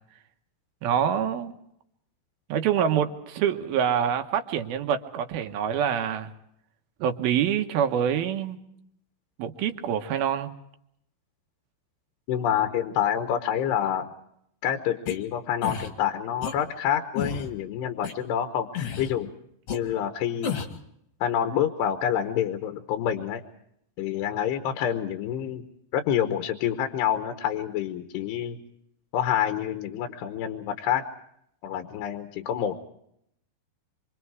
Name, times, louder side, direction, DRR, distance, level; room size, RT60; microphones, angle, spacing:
voice 1, 0.8-1.5 2.5-6.3 7.0-8.6 9.4-10.5, right 8 dB, 70° right, 6 dB, 2.9 m, -26 dB
voice 2, 12.3-14.1 14.6-19.3 19.7-20.6 21.2-23.4 24.0-25.6 25.9-28.6 29.1-31.0 31.6-32.8, left 9 dB, 85° left, 7 dB, 3.3 m, -27 dB
sound 1, 15.1-15.2 15.6-15.9 16.4-16.5 17.1-17.5 18.0-18.1 18.7-19.1 19.7-19.8 20.4-20.8, left 7 dB, 45° left, 2.2 m, -31 dB
26.5 x 25.0 x 4.8 m, 0.74 s
omnidirectional pair, 4.7 m